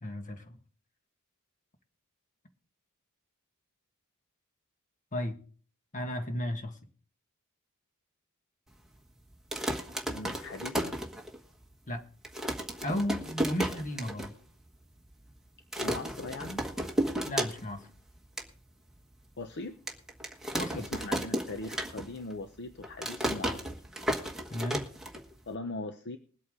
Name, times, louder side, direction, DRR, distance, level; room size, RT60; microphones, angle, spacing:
voice 1, 0.0-0.6 5.1-5.4 5.9-6.8 11.9-12.0 12.8-14.3 17.2-17.9 20.5-20.9 24.5-24.8, left 1 dB, 35° left, 6 dB, 1.6 m, -34 dB
sound 1, 9.3-11.6 12.0-12.1 12.2-14.3 14.7-14.8 15.0-15.3 15.7-17.9 18.2-18.5 19.0-19.1 19.9-22.3 22.6-25.5, right 1 dB, ahead, 1.4 m, -33 dB
voice 2, 10.1-11.0 15.8-16.6 19.4-20.0 20.7-23.8 25.5-26.2, left 2 dB, 50° left, 8 dB, 0.8 m, -40 dB
20.5 x 8.4 x 3.7 m, 0.43 s
head